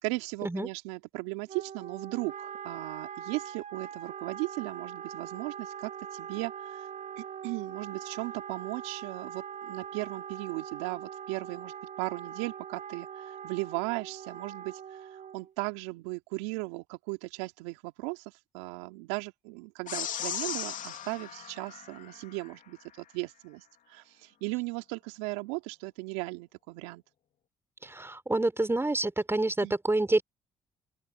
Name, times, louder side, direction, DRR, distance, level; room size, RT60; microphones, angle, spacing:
voice 1, 0.0-6.9 7.2-27.0 29.6-29.8, right 25 dB, 80° right, 2.7 m, -37 dB
Wind instrument woodwind instrument, 1.5-15.5, right 8 dB, 55° right, 5.9 m, -42 dB
sound 1, 19.9-22.5, left 9 dB, 60° left, 2.8 m, -37 dB
voice 2, 27.8-30.2, right 2 dB, 15° right, 3.8 m, -27 dB
open air
hypercardioid pair, 45°, 15 cm